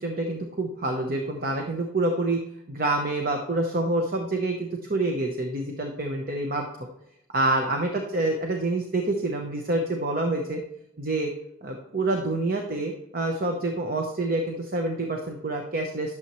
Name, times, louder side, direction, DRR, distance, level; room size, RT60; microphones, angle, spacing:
voice 1, 0.0-2.4 2.7-6.9 7.3-10.6 11.0-11.3 11.6-16.2, right 2 dB, 45° right, 3 dB, 0.8 m, -27 dB
11.5 x 7.1 x 3.1 m, 0.80 s
head